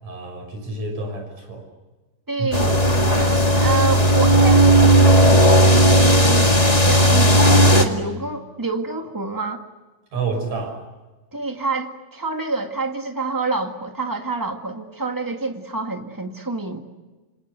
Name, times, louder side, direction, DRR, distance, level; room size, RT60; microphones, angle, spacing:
voice 1, 0.0-1.7 2.4-2.5 10.1-10.9, right 4 dB, 50° right, 5 dB, 7.2 m, -29 dB
voice 2, 2.3-9.6 11.3-16.8, right 3 dB, 10° right, 4 dB, 0.8 m, -28 dB
sound 1, 2.5-7.8, right 1 dB, 15° left, 1.4 m, -14 dB
28.5 x 27.0 x 6.8 m, 1.2 s
omnidirectional pair, 4.2 m